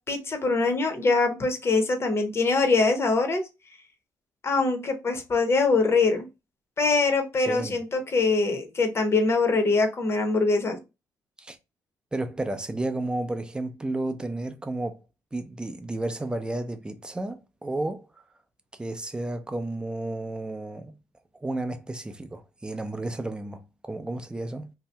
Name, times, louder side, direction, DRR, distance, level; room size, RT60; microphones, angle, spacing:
voice 1, 0.1-3.4 4.4-6.3 6.8-10.8, left 3 dB, 35° left, 0.8 m, -23 dB
voice 2, 7.5-7.8 11.4-11.6 12.1-15.0 15.3-18.2 18.7-20.9 21.4-24.7, right 2 dB, 10° right, 0.5 m, -32 dB
2.7 x 2.1 x 3.3 m
cardioid pair, 100°, 7 cm